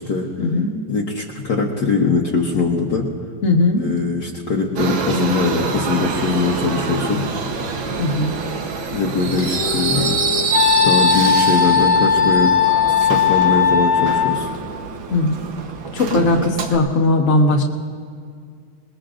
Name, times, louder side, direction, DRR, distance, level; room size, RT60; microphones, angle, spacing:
voice 1, 0.4-0.7 3.4-3.8 8.0-8.3 9.9-10.0 15.1-15.4 15.9-17.6, left 2 dB, 40° left, 0 dB, 1.7 m, -18 dB
voice 2, 0.9-3.1 3.8-7.2 8.9-10.1 10.8-12.6 12.8-14.5, left 4 dB, 55° left, -2 dB, 1.6 m, -21 dB
Subway metro underground, 4.8-16.8, right 5 dB, 65° right, 1.8 m, -25 dB
Wind instrument woodwind instrument, 9.1-14.6, left 6 dB, 70° left, 1.6 m, -18 dB
27.5 x 20.0 x 2.5 m, 2.1 s
omnidirectional pair, 2.4 m